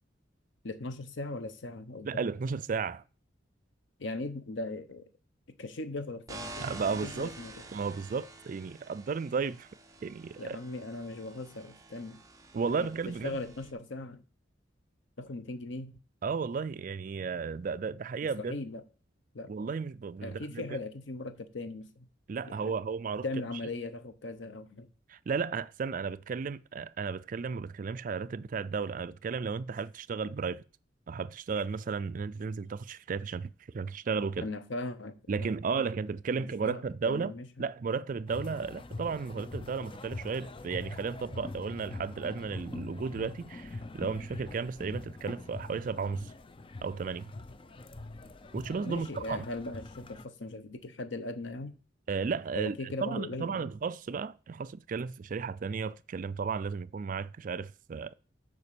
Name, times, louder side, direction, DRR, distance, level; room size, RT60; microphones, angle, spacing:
voice 1, 0.6-2.1 4.0-5.1 5.6-6.6 7.0-7.5 10.4-12.2 12.6-12.9 13.2-14.2 15.2-16.0 18.5-18.8 19.3-19.5 20.2-22.1 22.4-22.8 23.2-24.9 34.4-35.5 36.3-37.5 48.8-51.7 52.6-53.7, left 2 dB, 75° left, 0.8 m, -39 dB
voice 2, 2.0-3.0 6.6-7.3 7.7-9.7 10.0-10.6 12.5-13.4 16.2-18.6 19.5-20.6 22.3-23.2 25.1-30.6 31.1-33.5 33.7-34.5 35.3-37.3 37.6-46.3 46.8-47.3 48.5-49.4 52.1-52.7 53.0-58.1, right 5 dB, 45° right, 0.4 m, -34 dB
sound 1, 6.3-13.7, right 2 dB, 20° right, 0.9 m, -48 dB
sound 2, 38.3-50.3, left 2 dB, 30° left, 0.5 m, -43 dB
7.1 x 5.2 x 6.7 m
head